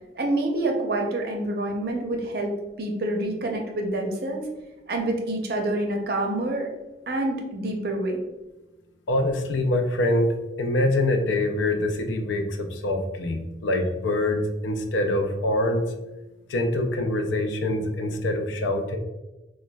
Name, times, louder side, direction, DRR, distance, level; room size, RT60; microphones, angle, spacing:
voice 1, 0.1-4.4 4.9-6.7 7.1-8.2, right 1 dB, 55° right, 2 dB, 0.5 m, -27 dB
voice 2, 9.1-15.8 16.5-19.0, left 1 dB, 85° left, 4 dB, 0.4 m, -25 dB
4.1 x 2.1 x 2.2 m, 1.0 s
head